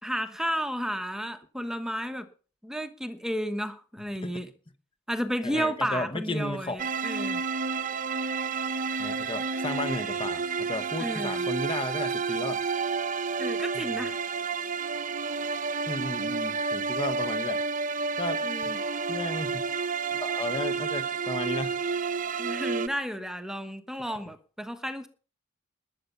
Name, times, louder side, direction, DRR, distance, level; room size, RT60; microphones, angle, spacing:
voice 1, 0.0-2.3 2.6-4.5 5.1-7.4 11.0-11.5 13.4-14.2 18.4-18.8 22.4-25.1, equal, ahead, 9 dB, 1.2 m, -32 dB
voice 2, 5.4-6.8 9.0-12.6 13.7-14.0 15.9-17.6 18.2-18.4 19.1-19.6 20.2-21.8 24.1-24.2, left 2 dB, 25° left, 10 dB, 1.0 m, -34 dB
sound 1, 6.8-22.9, right 5 dB, 40° right, 0.8 m, -30 dB
20.0 x 8.2 x 5.6 m, 0.39 s
head